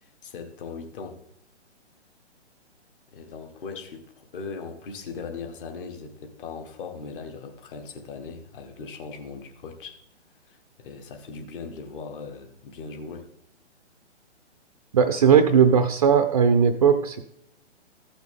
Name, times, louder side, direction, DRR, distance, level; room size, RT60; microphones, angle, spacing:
voice 1, 0.0-1.2 3.1-10.0 10.5-13.3, left 4 dB, 45° left, 6 dB, 1.5 m, -39 dB
voice 2, 14.9-17.2, right 7 dB, 35° right, 8 dB, 0.4 m, -18 dB
14.5 x 6.0 x 3.6 m, 0.77 s
hypercardioid pair, 145°, 35 cm